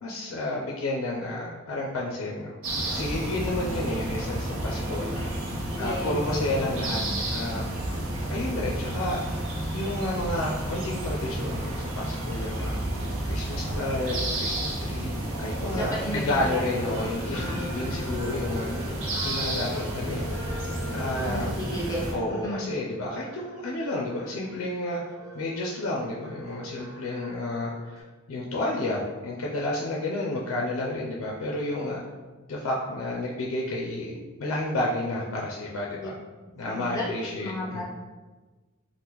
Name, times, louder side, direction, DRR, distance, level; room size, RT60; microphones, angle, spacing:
voice 1, 0.0-2.6 2.9-5.3 5.8-7.0 7.3-7.7 8.3-9.2 9.7-20.3 20.9-21.6 22.1-25.0 25.3-27.7 28.3-32.0 32.5-36.1 36.6-37.8, left 1 dB, 80° left, -2 dB, 0.4 m, -31 dB
sound 1, 2.6-22.1, right 1 dB, 75° right, 0.6 m, -31 dB
voice 2, 5.8-6.2 15.7-17.7 21.2-22.7 36.0-36.1 36.7-37.8, equal, 15° left, -5 dB, 0.6 m, -34 dB
sound 2, 10.6-28.0, left 1 dB, 15° right, 0.8 m, -44 dB
3.4 x 2.0 x 2.9 m, 1.3 s
head